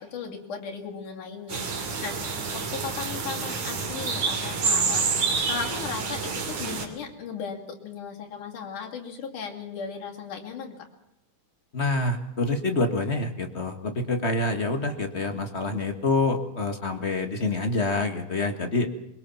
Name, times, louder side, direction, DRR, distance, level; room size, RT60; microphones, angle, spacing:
voice 1, 0.0-5.1 5.5-10.9, left 6 dB, 85° left, 1 dB, 4.1 m, -36 dB
sound 1, 1.5-6.9, right 5 dB, 75° right, 4.1 m, -28 dB
voice 2, 11.7-18.9, left 2 dB, 30° left, 6 dB, 1.2 m, -26 dB
22.0 x 21.5 x 7.1 m, 0.86 s
omnidirectional pair, 3.5 m